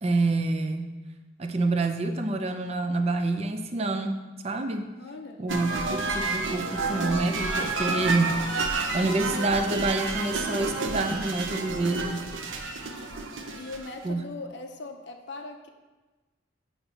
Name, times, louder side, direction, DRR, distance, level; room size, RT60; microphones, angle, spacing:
voice 1, 0.0-0.9 1.4-4.2 4.4-4.9 5.4-8.5 8.9-12.2 14.0-14.2, right 2 dB, 30° right, 6 dB, 0.4 m, -27 dB
voice 2, 5.0-5.4 13.5-15.7, left 3 dB, 55° left, 4 dB, 0.5 m, -40 dB
sound 1, 5.5-14.1, right 3 dB, 70° right, 0.7 m, -30 dB
8.7 x 2.9 x 5.5 m, 1.2 s
head